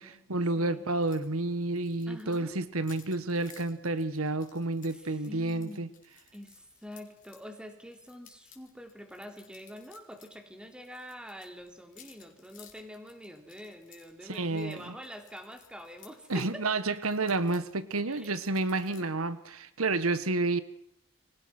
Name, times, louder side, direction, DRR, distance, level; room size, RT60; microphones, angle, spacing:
voice 1, 0.0-5.9 14.2-14.9 16.3-20.6, right 2 dB, 90° right, 13 dB, 1.4 m, -30 dB
sound 1, 1.0-1.3 1.5-7.4 7.9-10.4 10.6-16.5 16.9-19.0, left 10 dB, 40° left, 4.7 m, -58 dB
voice 2, 2.1-2.6 4.9-5.9 6.3-16.6 18.1-18.3 18.9-19.1, equal, 5° right, 4 dB, 3.5 m, -46 dB
29.5 x 24.5 x 6.1 m, 0.77 s
head